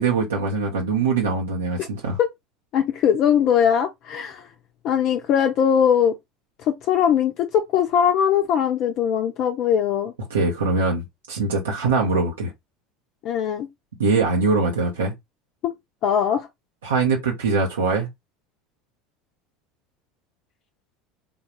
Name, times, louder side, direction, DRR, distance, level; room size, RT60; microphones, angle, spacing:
voice 1, 0.0-2.2 10.3-12.5 14.0-15.1 16.8-18.1, right 4 dB, 85° right, 0.9 m, -22 dB
voice 2, 2.7-4.5 4.8-6.1 6.6-10.1 13.2-13.7 15.6-15.7 16.0-16.5, left 8 dB, 55° left, 0.5 m, -20 dB
3.7 x 2.4 x 3.0 m
hypercardioid pair, 75°, 0 cm